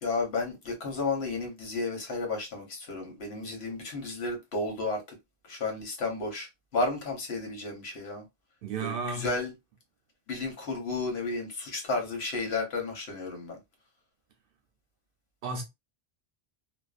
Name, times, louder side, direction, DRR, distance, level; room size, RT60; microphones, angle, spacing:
voice 1, 0.0-5.0 5.5-6.5 6.7-8.2 8.8-9.5 10.3-13.6, left 3 dB, 80° left, 1.2 m, -32 dB
voice 2, 8.6-9.4 15.4-15.6, right 4 dB, 65° right, 0.7 m, -33 dB
2.5 x 2.1 x 2.4 m
omnidirectional pair, 1.1 m